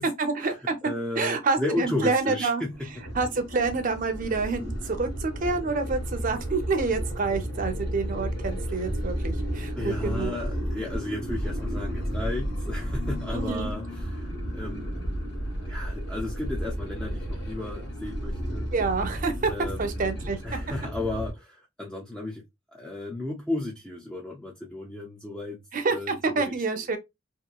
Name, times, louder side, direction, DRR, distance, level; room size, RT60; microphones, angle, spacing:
voice 1, 0.2-0.8 1.2-2.6 3.1-10.3 13.3-13.7 18.7-19.5 19.8-20.4 25.7-27.0, right 4 dB, 45° right, 0.5 m, -27 dB
voice 2, 0.8-2.7 8.7-8.9 9.7-15.0 15.7-18.7 19.5-22.4 22.7-25.6 25.9-26.9, left 2 dB, 5° left, 0.4 m, -34 dB
sound 1, 2.7-21.3, equal, 60° left, 1.0 m, -32 dB
2.9 x 2.7 x 2.2 m
head